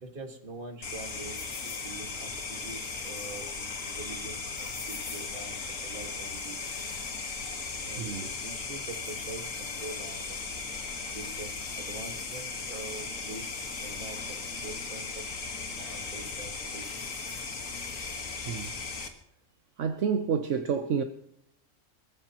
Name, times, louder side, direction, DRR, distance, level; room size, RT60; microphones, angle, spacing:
voice 1, 0.0-6.8 7.8-8.1 8.4-10.4 11.1-13.5 13.8-14.4 14.6-15.3 15.8-17.1, right 2 dB, 40° right, 1.9 m, -44 dB
sound 1, 0.8-19.1, left 4 dB, 80° left, 2.0 m, -37 dB
voice 2, 8.0-8.3 18.4-18.7 19.8-21.0, right 6 dB, 70° right, 1.1 m, -29 dB
23.0 x 15.0 x 3.0 m
omnidirectional pair, 1.4 m